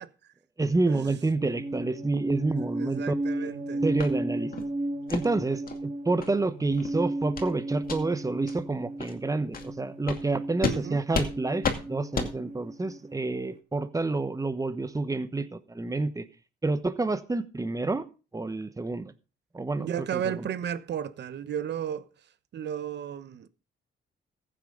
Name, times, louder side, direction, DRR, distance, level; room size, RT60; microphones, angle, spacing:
voice 1, 0.6-3.5 3.8-4.6 5.1-16.3 16.6-18.1 18.3-19.1 19.5-20.5, right 3 dB, 15° right, 1.2 m, -29 dB
sound 1, 1.4-13.4, right 1 dB, 35° right, 2.3 m, -35 dB
voice 2, 2.6-3.8 10.7-11.0 19.8-22.1 22.5-23.5, right 9 dB, 60° right, 1.0 m, -34 dB
sound 2, 4.0-4.1 4.5-4.7 5.1-5.2 5.7-5.8 6.2-6.3 6.7-6.9 7.3-7.5 7.8-8.0 8.5-8.6 9.0-9.1 9.5-9.7 10.1-10.2 10.6-10.8 11.1-11.3 11.6-11.8 12.1-12.3, left 5 dB, 45° left, 2.4 m, -30 dB
15.0 x 8.9 x 4.0 m
cardioid pair, 90°, 20 cm